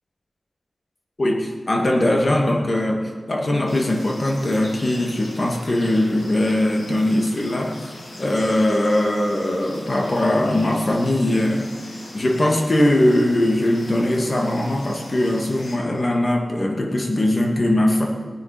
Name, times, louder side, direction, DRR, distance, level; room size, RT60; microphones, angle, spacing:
voice 1, 1.2-7.8 8.2-11.7 12.1-18.1, left 1 dB, 50° left, 1 dB, 2.5 m, -20 dB
sound 1, 3.7-15.8, left 1 dB, 80° left, 2.8 m, -41 dB
17.5 x 10.0 x 5.3 m, 1.5 s
cardioid pair, 45°, 0 cm